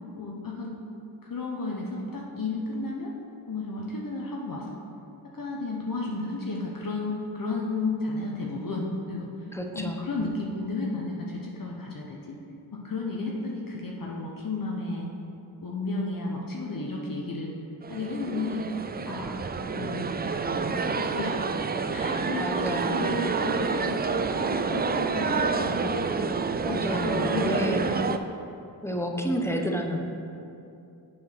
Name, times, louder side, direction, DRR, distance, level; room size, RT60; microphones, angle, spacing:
voice 1, 0.1-0.7 1.2-3.1 3.5-4.8 5.3-9.5 9.7-12.3 12.7-15.1 15.6-17.5 17.9-18.7 19.1-19.4 19.7-21.3 21.9-26.1 26.6-28.0, left 2 dB, 45° left, -2 dB, 1.1 m, -33 dB
voice 2, 9.5-10.1 22.4-23.1 26.6-27.9 28.8-30.0, equal, 5° left, 2 dB, 1.0 m, -30 dB
sound 1, 17.8-28.2, right 4 dB, 25° right, 0.3 m, -28 dB
7.4 x 4.7 x 5.8 m, 2.7 s
cardioid pair, 45°, 46 cm